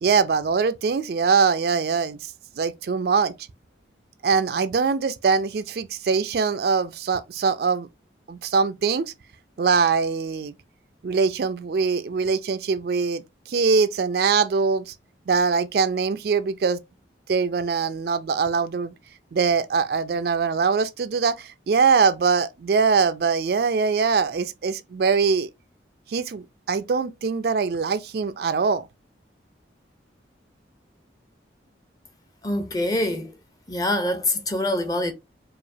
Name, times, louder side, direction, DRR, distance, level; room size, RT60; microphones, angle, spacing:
voice 1, 0.0-2.2 2.6-3.3 4.2-7.9 8.3-9.1 9.6-10.5 11.0-13.2 13.5-14.9 15.3-16.8 17.3-18.9 19.3-25.5 26.1-28.9, right 5 dB, 55° right, 0.3 m, -22 dB
voice 2, 32.4-33.4 33.7-35.1, left 1 dB, 20° left, 0.6 m, -25 dB
4.8 x 2.4 x 2.6 m
head